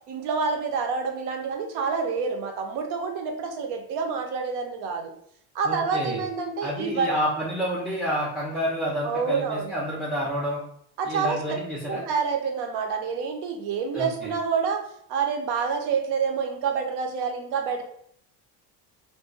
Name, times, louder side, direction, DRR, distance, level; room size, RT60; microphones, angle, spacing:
voice 1, 0.1-5.1 5.5-7.1 9.0-9.7 11.0-11.4 11.8-17.8, right 5 dB, 75° right, 4 dB, 0.8 m, -27 dB
voice 2, 5.6-6.2 6.6-10.6 11.0-12.0 13.9-14.3, equal, ahead, -4 dB, 0.4 m, -29 dB
2.6 x 2.2 x 3.8 m, 0.68 s
cardioid pair, 140°, 40 cm